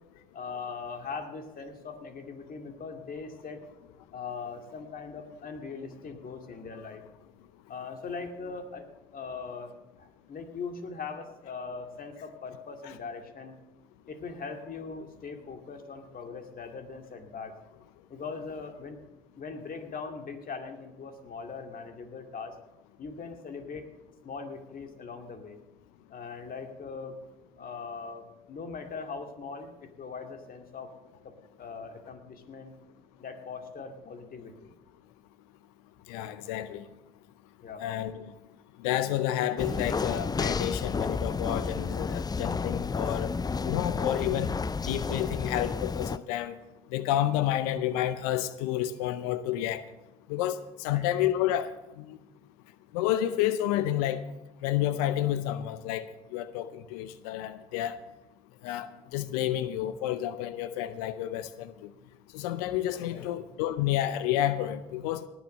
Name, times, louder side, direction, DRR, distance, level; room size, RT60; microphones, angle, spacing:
voice 1, 0.3-3.7 4.1-7.0 7.7-8.9 9.1-13.6 14.1-17.5 18.1-19.0 19.4-22.6 23.0-23.9 24.2-25.6 26.1-27.2 27.6-30.9 31.2-31.3 31.6-32.7 33.2-34.7 37.6-37.8 50.9-51.1 63.0-63.3, left 5 dB, 50° left, 2.3 m, -40 dB
voice 2, 36.1-36.8 37.8-38.3 38.8-43.3 43.6-44.5 44.9-46.6 46.9-49.8 50.3-51.7 52.0-52.2 52.9-54.2 54.6-56.1 56.3-57.9 58.6-61.7 62.3-65.2, left 12 dB, 85° left, 0.6 m, -30 dB
sound 1, 39.6-46.2, left 5 dB, 20° left, 0.4 m, -31 dB
18.5 x 7.2 x 6.5 m
hypercardioid pair, 55°, 19 cm